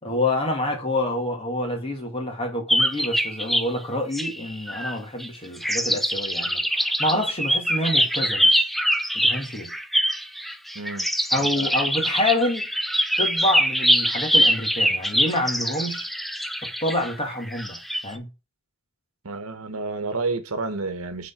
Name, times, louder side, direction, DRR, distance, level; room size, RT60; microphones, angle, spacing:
voice 1, 0.0-8.5 9.1-9.7 11.3-12.7 13.2-16.1 16.6-18.3, left 1 dB, 25° left, 2.0 m, -27 dB
sound 1, 2.7-3.7 4.1-5.3 5.6-18.1, equal, ahead, 0.4 m, -23 dB
voice 2, 10.7-11.1 11.4-11.7 19.2-21.3, right 3 dB, 80° right, 1.2 m, -30 dB
6.2 x 4.0 x 5.9 m
head